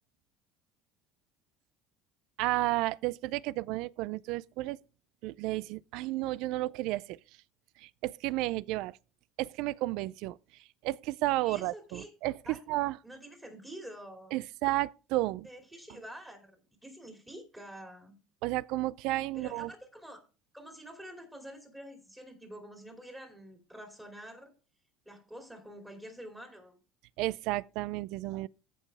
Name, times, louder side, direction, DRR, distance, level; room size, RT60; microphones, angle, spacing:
voice 1, 2.4-4.8 5.2-7.2 7.8-9.0 9.4-13.0 14.3-15.5 18.4-19.7 27.2-28.5, right 18 dB, 70° right, 0.4 m, -32 dB
voice 2, 11.4-12.1 12.4-12.6 13.0-14.4 15.4-18.2 19.3-20.2 20.5-24.5 25.0-26.8, equal, 10° right, 2.7 m, -47 dB
14.5 x 5.4 x 3.4 m
cardioid pair, 140°, 0 cm